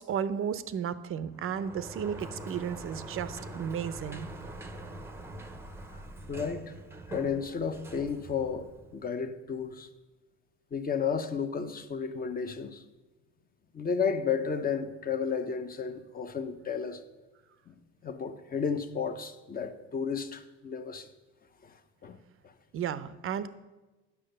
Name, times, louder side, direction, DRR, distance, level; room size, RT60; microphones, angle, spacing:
voice 1, 0.0-4.3 22.7-23.5, right 8 dB, 40° right, 0.6 m, -34 dB
Sliding door, 1.4-9.1, right 1 dB, 5° right, 0.8 m, -44 dB
voice 2, 6.3-6.7 7.1-9.9 10.7-12.8 13.7-17.0 17.7-17.8 18.0-21.1 21.6-21.8 22.0-22.2 22.4-22.5, left 6 dB, 25° left, 0.8 m, -33 dB
9.9 x 5.9 x 6.6 m
supercardioid pair, 110°, 35 cm